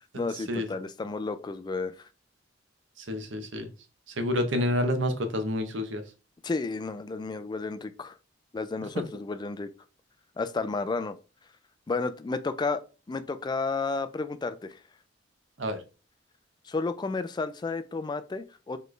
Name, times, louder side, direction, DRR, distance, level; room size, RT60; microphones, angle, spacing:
voice 1, 0.1-1.9 6.4-8.1 8.5-9.7 10.4-11.2 11.9-12.8 13.1-14.8 16.7-18.8, left 3 dB, 25° left, 12 dB, 0.3 m, -32 dB
voice 2, 3.0-3.7 4.2-6.0 15.6-15.8, left 1 dB, 75° right, 8 dB, 0.8 m, -28 dB
4.1 x 3.2 x 3.2 m, 0.33 s
head